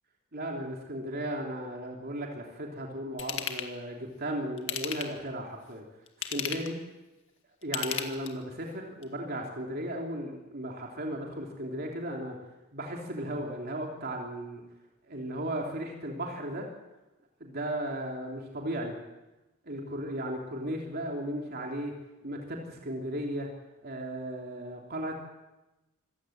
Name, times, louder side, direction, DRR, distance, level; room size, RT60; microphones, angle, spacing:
voice 1, 0.3-5.8 6.2-6.8 7.6-12.4 12.7-14.6 15.1-16.7 17.4-19.0 19.6-21.9 22.2-23.5 23.8-25.1, right 1 dB, 45° right, 1 dB, 3.1 m, -35 dB
Ratchet pawl / Tools, 3.2-3.7 4.6-5.3 6.1-6.8 7.6-8.5 9.0-9.1, left 9 dB, 60° left, 2.1 m, -34 dB
26.0 x 15.5 x 8.8 m, 1.0 s
head